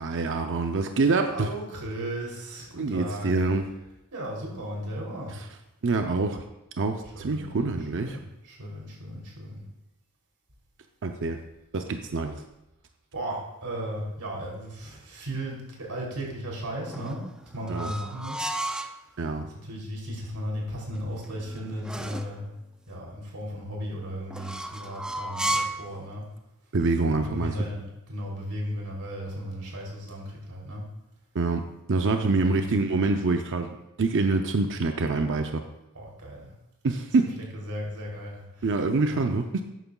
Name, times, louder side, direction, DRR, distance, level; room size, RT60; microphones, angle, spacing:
voice 1, 0.0-1.5 2.8-3.7 5.3-5.5 5.8-6.5 6.8-8.2 11.0-11.4 11.7-12.3 17.7-17.9 19.2-19.5 26.7-27.6 31.3-31.6 31.9-33.7 34.0-35.6 36.8-37.4 38.6-39.6, right 3 dB, 55° right, 5 dB, 0.6 m, -25 dB
voice 2, 1.3-3.3 4.1-5.3 7.1-7.6 7.9-9.6 13.1-17.2 17.5-18.5 19.6-22.5 22.9-26.2 27.1-27.8 28.1-30.8 32.4-32.7 35.9-36.5 37.2-37.3 37.5-38.6 39.1-39.2, equal, 90° right, -2 dB, 3.2 m, -35 dB
sound 1, 16.8-19.0 21.0-22.4 24.3-25.9, right 1 dB, 5° right, 0.3 m, -33 dB
13.0 x 9.1 x 2.3 m, 0.92 s
head